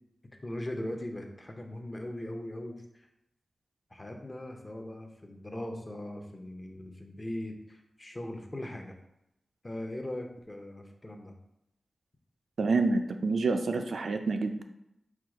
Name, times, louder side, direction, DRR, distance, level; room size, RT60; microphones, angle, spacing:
voice 1, 0.4-3.1 3.9-9.0 9.6-11.3, left 1 dB, 25° left, 3 dB, 0.6 m, -39 dB
voice 2, 12.6-14.6, right 3 dB, 75° right, 6 dB, 0.3 m, -28 dB
4.6 x 2.3 x 4.8 m, 0.83 s
wide cardioid pair, 100°, 0 cm